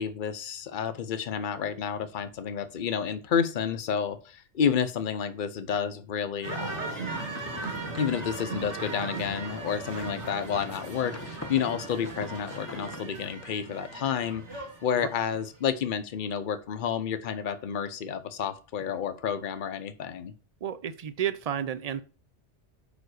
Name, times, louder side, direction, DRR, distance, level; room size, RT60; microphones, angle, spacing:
voice 1, 0.0-7.0 7.9-20.3, left 7 dB, 50° left, 11 dB, 0.8 m, -30 dB
sound 1, 6.4-15.4, right 3 dB, 75° right, 2.1 m, -38 dB
sound 2, 6.8-13.0, left 2 dB, 15° left, 0.7 m, -45 dB
voice 2, 20.6-22.0, right 9 dB, 50° right, 14 dB, 0.5 m, -31 dB
5.1 x 5.1 x 6.3 m, 0.36 s
omnidirectional pair, 1.2 m